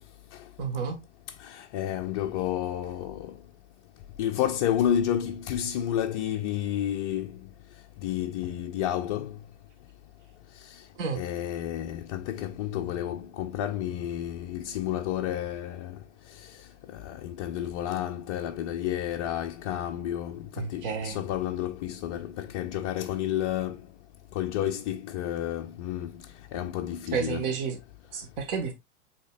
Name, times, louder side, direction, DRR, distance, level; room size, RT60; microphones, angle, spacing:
voice 1, 0.6-1.0 11.0-11.2 20.6-21.2 27.1-27.8 28.1-28.7, right 6 dB, 50° right, 1.2 m, -30 dB
voice 2, 1.4-3.3 4.2-7.4 8.0-9.4 11.2-16.0 16.9-23.8 24.4-26.1 26.5-27.5, left 11 dB, 30° left, 0.4 m, -30 dB
8.0 x 2.9 x 2.3 m
figure-of-eight pair, 95°, 35 cm